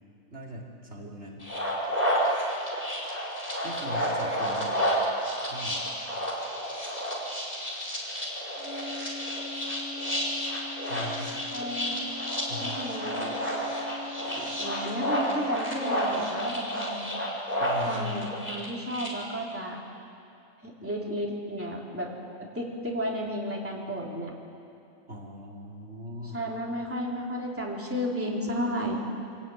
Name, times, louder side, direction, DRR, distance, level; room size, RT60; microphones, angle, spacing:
voice 1, 0.3-1.4 3.6-4.7 5.5-5.8 10.3-10.4 10.9-11.4 12.5-12.8 17.6-18.3 25.1-26.4, left 1 dB, 55° right, -2 dB, 3.1 m, -39 dB
sound 1, 1.4-19.1, equal, 30° left, 5.1 m, -30 dB
sound 2, 8.6-15.7, left 4 dB, 45° left, 1.5 m, -42 dB
voice 2, 11.5-12.0 12.6-13.4 14.2-17.1 17.9-19.8 20.6-22.1 22.4-24.3 26.2-29.0, equal, 10° right, -3 dB, 3.2 m, -33 dB
26.5 x 18.0 x 9.1 m, 2.7 s
omnidirectional pair, 1.4 m